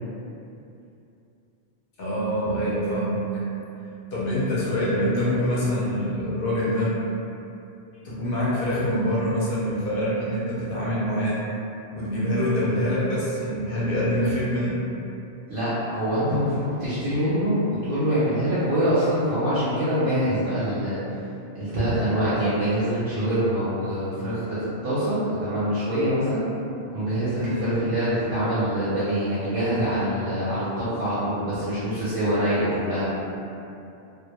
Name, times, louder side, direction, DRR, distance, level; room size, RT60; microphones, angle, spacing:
voice 1, 2.0-3.3 4.1-6.9 8.0-11.4 11.9-14.8 27.3-27.6, equal, 60° left, -8 dB, 0.7 m, -25 dB
voice 2, 15.5-21.0 21.5-26.4 26.9-33.1, equal, 60° right, -11 dB, 0.7 m, -24 dB
2.1 x 2.0 x 2.9 m, 2.7 s
omnidirectional pair, 1.2 m